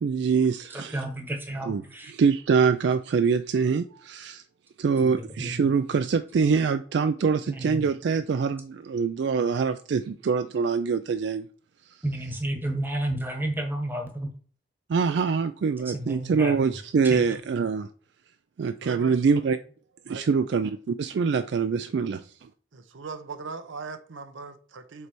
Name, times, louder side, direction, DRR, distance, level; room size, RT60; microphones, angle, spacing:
voice 1, 0.0-1.0 1.7-1.8 2.1-4.4 4.8-11.5 14.9-17.9 18.6-19.6 20.1-22.5, right 5 dB, 65° right, 0.3 m, -24 dB
voice 2, 0.7-2.1 5.0-5.7 7.5-7.9 12.0-14.3 15.8-16.8 17.0-17.2, right 1 dB, 10° right, 1.0 m, -31 dB
voice 3, 18.8-19.1 20.1-20.6 21.9-22.2 22.7-25.1, right 4 dB, 90° right, 0.7 m, -40 dB
6.7 x 3.3 x 4.5 m
head